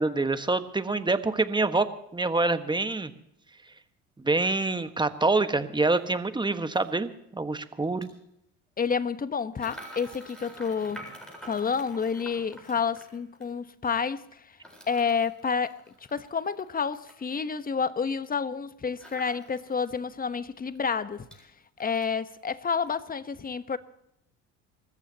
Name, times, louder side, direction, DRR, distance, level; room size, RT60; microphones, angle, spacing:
voice 1, 0.0-3.1 4.2-8.1, right 3 dB, 15° right, 1.4 m, -26 dB
sound 1, 5.9-6.0 6.7-6.9 7.8-8.1 9.5-13.5 14.6-17.2 19.0-20.0 20.4-20.5 20.7-21.4 21.8-22.4 22.7-22.9, right 1 dB, 5° left, 7.9 m, -48 dB
voice 2, 8.8-11.0 11.4-14.4 14.9-15.8 16.1-21.3 21.8-23.8, left 6 dB, 25° left, 1.1 m, -29 dB
28.5 x 14.5 x 2.9 m
hypercardioid pair, 75°, 33 cm